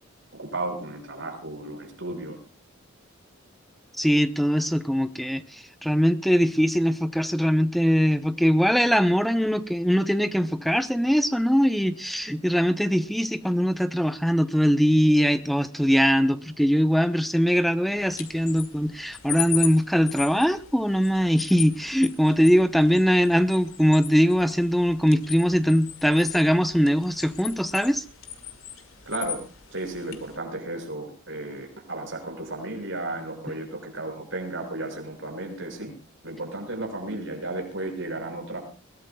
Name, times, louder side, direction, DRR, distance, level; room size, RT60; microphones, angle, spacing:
voice 1, 0.3-2.4 29.1-29.4 29.7-35.9 36.2-38.6, right 2 dB, 65° right, 3 dB, 6.2 m, -34 dB
voice 2, 4.0-28.0, equal, ahead, 10 dB, 0.7 m, -21 dB
sound 1, 18.0-30.4, left 11 dB, 85° left, 2.1 m, -38 dB
21.5 x 18.0 x 2.3 m, 0.37 s
head